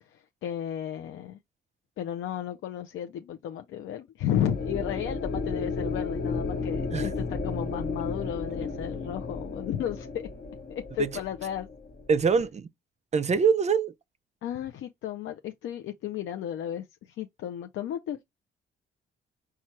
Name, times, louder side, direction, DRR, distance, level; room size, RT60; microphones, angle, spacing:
voice 1, 0.0-1.4 2.0-10.3 10.9-11.7 14.4-18.2, left 10 dB, 75° left, 0.5 m, -33 dB
sound 1, 4.3-12.5, left 4 dB, 50° left, 1.0 m, -33 dB
voice 2, 12.1-12.7 13.1-13.9, right 6 dB, 35° right, 0.5 m, -23 dB
4.5 x 2.3 x 4.3 m
cardioid pair, 90°, 20 cm